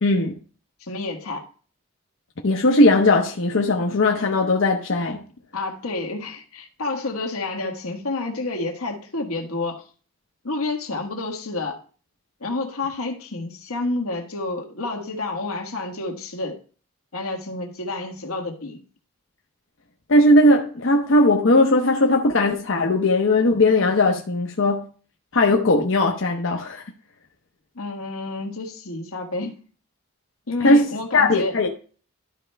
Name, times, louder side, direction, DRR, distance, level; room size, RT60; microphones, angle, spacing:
voice 1, 0.0-0.4 2.4-5.2 20.1-24.9 25.3-26.8 30.6-31.7, left 2 dB, 60° left, 0.8 m, -18 dB
voice 2, 0.8-1.4 5.5-9.8 10.4-11.8 12.4-16.6 17.1-18.8 27.7-29.6 30.5-31.6, left 2 dB, 90° left, 1.5 m, -29 dB
12.0 x 4.4 x 3.4 m
head